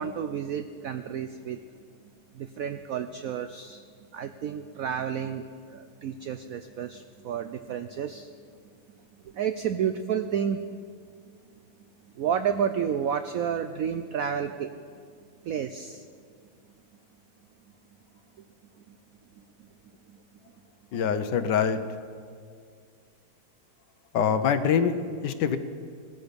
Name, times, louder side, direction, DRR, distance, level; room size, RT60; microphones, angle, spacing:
voice 1, 0.0-1.6 2.3-3.8 4.1-8.3 9.2-11.2 12.0-14.8 15.4-16.1 18.9-19.0 19.4-19.7 20.1-20.2, right 8 dB, 80° right, 9 dB, 0.7 m, -31 dB
voice 2, 20.9-21.8 24.1-25.0 25.2-25.6, left 7 dB, 70° left, 10 dB, 1.3 m, -24 dB
18.5 x 13.0 x 5.2 m, 2.2 s
omnidirectional pair, 2.1 m